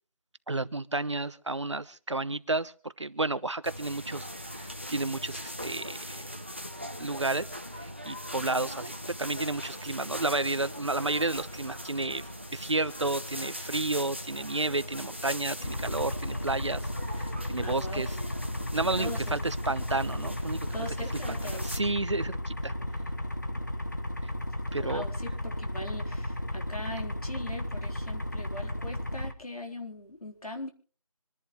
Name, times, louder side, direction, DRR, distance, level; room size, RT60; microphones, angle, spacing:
voice 1, 0.5-6.2 7.0-7.5 7.8-12.2 12.5-16.9 17.2-18.2 18.7-20.7 21.3-22.7 24.7-25.1, right 2 dB, 55° right, 15 dB, 0.9 m, -31 dB
sound 1, 3.6-21.8, equal, 20° right, 0.7 m, -40 dB
sound 2, 15.6-29.3, left 1 dB, 30° left, 0.9 m, -34 dB
voice 2, 17.6-18.1 19.0-19.4 20.7-21.7 24.8-30.7, left 1 dB, 85° left, 3 dB, 3.9 m, -40 dB
25.5 x 11.0 x 3.2 m, 0.40 s
figure-of-eight pair, 180°, 18 cm